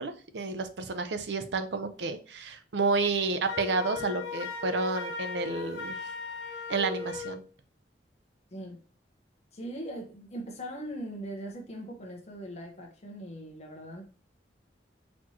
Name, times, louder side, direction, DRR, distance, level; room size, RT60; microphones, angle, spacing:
voice 1, 0.0-5.9 6.7-7.4, right 3 dB, 75° right, 0.6 m, -30 dB
Wind instrument woodwind instrument, 3.5-7.4, left 4 dB, 90° left, 0.8 m, -37 dB
voice 2, 9.5-14.1, right 1 dB, 40° left, 0.9 m, -40 dB
4.2 x 3.1 x 2.8 m
head